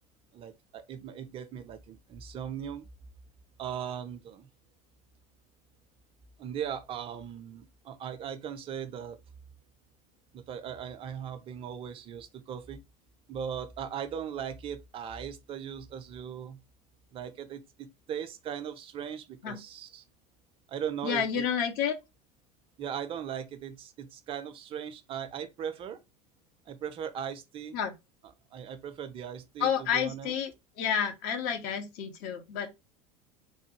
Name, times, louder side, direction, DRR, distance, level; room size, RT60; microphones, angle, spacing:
voice 1, 0.3-2.9 3.6-4.5 6.4-9.2 10.3-12.8 13.3-16.6 17.1-20.0 20.7-21.4 22.8-26.0 26.7-27.8 28.5-30.3, right 8 dB, 30° right, 0.5 m, -38 dB
voice 2, 21.0-21.9 27.7-27.9 29.6-30.5 30.8-32.7, left 8 dB, 50° left, 0.7 m, -30 dB
3.3 x 2.2 x 3.0 m
figure-of-eight pair, 75°, 20 cm